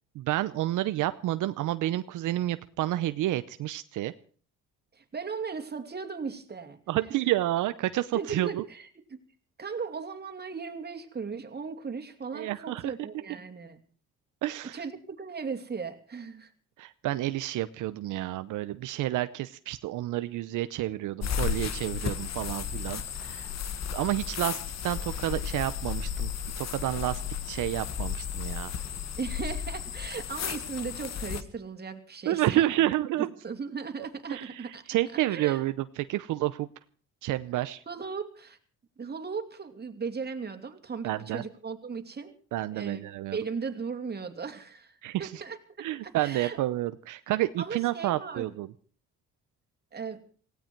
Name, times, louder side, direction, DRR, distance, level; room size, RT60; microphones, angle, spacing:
voice 1, 0.1-4.1 6.9-8.6 12.3-12.9 14.4-14.8 16.8-23.5 23.9-26.3 26.6-28.7 32.3-33.3 34.3-36.7 37.2-37.8 41.0-41.4 42.5-43.4 45.0-45.4 45.8-48.7, right 14 dB, 85° right, 12 dB, 0.8 m, -30 dB
voice 2, 4.9-6.8 8.1-9.2 9.6-13.8 14.7-16.5 29.2-32.7 33.4-34.8 35.3-35.6 37.9-38.6 39.0-42.3 42.7-43.0 43.3-45.6 46.0-46.6 47.6-48.5 49.9-50.2, right 5 dB, 35° right, 6 dB, 2.8 m, -37 dB
sound 1, 21.2-31.4, left 8 dB, 60° left, 1.4 m, -34 dB
18.5 x 16.5 x 4.6 m, 0.44 s
cardioid pair, 90°, 30 cm